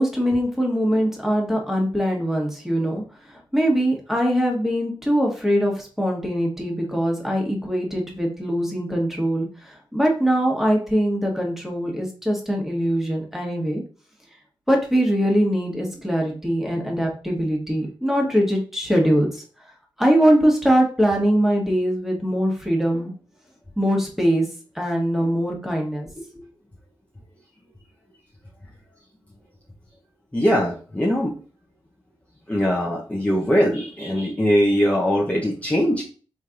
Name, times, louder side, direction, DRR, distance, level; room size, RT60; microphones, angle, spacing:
voice 1, 0.0-13.8 14.7-19.4 20.0-23.1 23.8-24.4 24.7-26.5, equal, 5° right, 0 dB, 1.5 m, -22 dB
voice 2, 30.3-31.3 32.5-36.0, equal, 15° left, -4 dB, 0.9 m, -21 dB
4.3 x 3.2 x 2.5 m, 0.39 s
cardioid pair, 45°, 9 cm